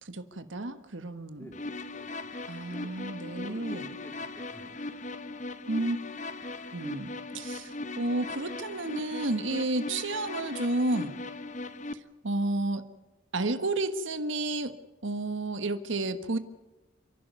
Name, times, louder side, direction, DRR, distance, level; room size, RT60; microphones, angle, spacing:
voice 1, 0.0-1.5 2.5-3.9 5.7-6.0 6.7-11.2 11.9-12.8 13.3-14.7 15.0-16.4, right 2 dB, 70° right, 11 dB, 1.4 m, -31 dB
voice 2, 1.4-2.9 3.3-4.7, equal, 10° left, 5 dB, 2.5 m, -51 dB
sound 1, 1.5-11.9, left 2 dB, 35° left, 0.9 m, -39 dB
30.0 x 11.5 x 9.5 m, 1.0 s
head